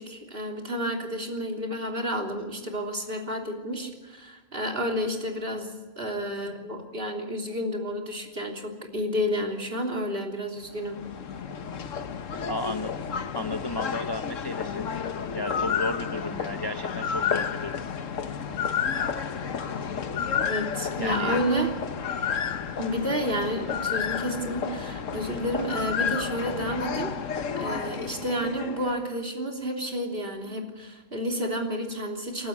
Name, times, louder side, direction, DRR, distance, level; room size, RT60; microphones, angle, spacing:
voice 1, 0.0-11.0 20.5-21.8 22.8-32.5, equal, 40° right, 1 dB, 3.5 m, -30 dB
sound 1, 10.6-29.0, left 7 dB, 65° left, 1.4 m, -31 dB
voice 2, 12.5-12.9 13.3-14.9 15.3-17.8 21.0-21.4, left 2 dB, 35° left, 9 dB, 0.4 m, -33 dB
29.5 x 12.5 x 8.4 m, 1.3 s
omnidirectional pair, 1.5 m